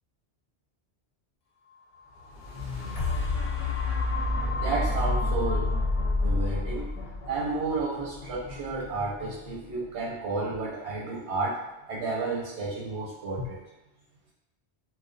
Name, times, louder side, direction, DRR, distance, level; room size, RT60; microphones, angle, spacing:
sound 1, 2.2-10.2 10.8-10.9, left 2 dB, 70° left, 0.8 m, -29 dB
voice 1, 4.6-5.7 6.2-6.9 7.3-11.6 11.9-13.6, right 3 dB, 80° right, -4 dB, 0.9 m, -31 dB
2.3 x 2.1 x 2.5 m, 0.98 s
omnidirectional pair, 1.1 m